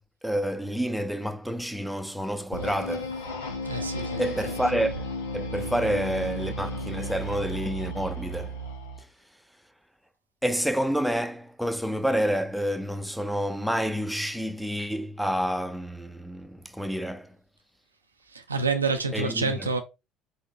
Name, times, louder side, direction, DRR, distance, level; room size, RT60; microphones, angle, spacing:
voice 1, 0.2-3.2 4.2-5.1 5.3-8.6 10.4-17.4 19.1-19.7, equal, ahead, 0.6 m, -29 dB
sound 1, 2.5-9.0, equal, 80° left, 1.0 m, -34 dB
voice 2, 3.7-4.7 18.3-19.8, right 4 dB, 85° right, 0.5 m, -28 dB
4.0 x 3.8 x 3.2 m
figure-of-eight pair, 60°, 0 cm